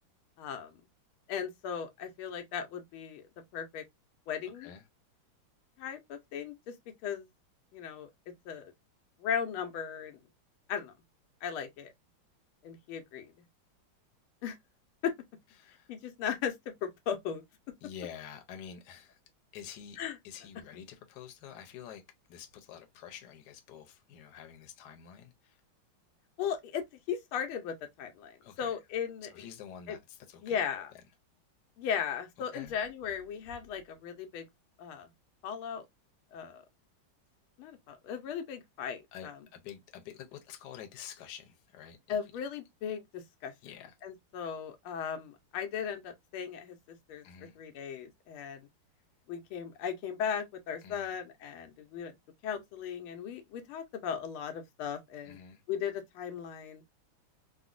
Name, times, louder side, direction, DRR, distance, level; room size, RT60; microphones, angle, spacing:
voice 1, 0.4-0.8 1.3-3.2 3.5-3.8 4.3-4.7 5.8-6.7 7.0-7.3 7.7-8.1 8.5-8.7 9.2-10.2 10.7-10.9 11.4-11.9 12.6-13.3 14.4-14.6 15.0-15.1 15.9-16.5 16.8-17.4 20.0-20.2 26.4-29.3 29.9-30.0 30.4-30.9 31.8-34.4 34.8-35.1 35.4-35.8 36.3-36.6 37.6-39.3 42.1-43.5 44.0-47.2 47.6-48.7 49.3-52.1 52.4-55.4 55.7-56.8, left 7 dB, 85° left, 1.6 m, -37 dB
voice 2, 15.6-15.9 17.8-19.2 19.5-20.0 20.2-22.0 22.3-25.6 28.4-28.8 29.3-30.6 32.5-32.8 39.1-42.2 43.6-43.9 47.2-47.6 50.8-51.2 55.2-55.6, left 9 dB, 65° left, 1.2 m, -48 dB
3.9 x 2.1 x 2.4 m
omnidirectional pair, 2.2 m